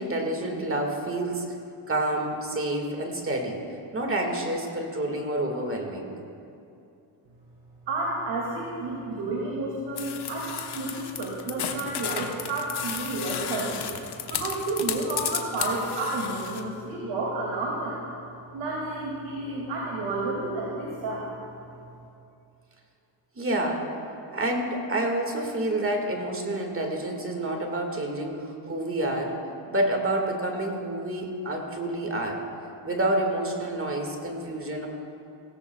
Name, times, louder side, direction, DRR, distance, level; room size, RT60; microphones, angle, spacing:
voice 1, 0.0-1.6 1.9-3.6 3.9-6.1 23.4-23.9 24.3-29.4 29.7-32.5 32.8-34.9, right 1 dB, 25° right, 2 dB, 2.0 m, -28 dB
voice 2, 7.9-18.0 18.5-21.3, right 2 dB, 70° right, -4 dB, 2.5 m, -31 dB
sound 1, 10.0-16.6, left 8 dB, 55° left, 1.2 m, -33 dB
18.0 x 16.5 x 2.4 m, 2.7 s
cardioid pair, 95°, 46 cm